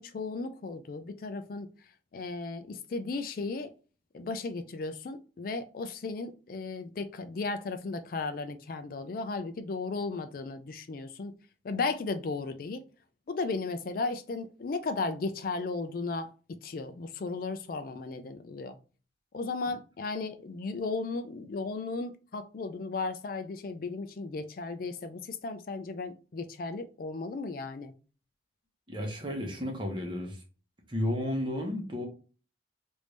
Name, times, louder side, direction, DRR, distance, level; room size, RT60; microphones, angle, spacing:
voice 1, 0.0-1.7 2.1-3.7 4.1-11.3 11.6-12.8 13.3-16.3 16.6-18.8 19.3-27.9, left 3 dB, 50° left, 0.4 m, -35 dB
voice 2, 28.9-30.4 30.9-32.1, left 1 dB, 25° right, 1.0 m, -32 dB
3.3 x 2.6 x 3.2 m
head